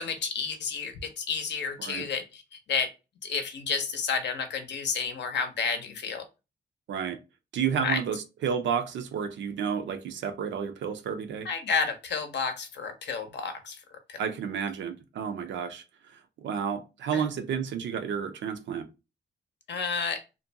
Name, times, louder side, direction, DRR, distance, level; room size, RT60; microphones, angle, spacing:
voice 1, 0.0-2.9 3.2-6.3 7.8-8.0 11.4-13.8 14.1-14.2 17.1-17.2 19.7-20.2, left 5 dB, 70° left, 0.6 m, -31 dB
voice 2, 6.9-7.2 7.5-11.5 14.2-15.8 16.1-18.9, right 7 dB, 90° right, 0.5 m, -31 dB
2.6 x 2.2 x 2.6 m
cardioid pair, 95°, 19 cm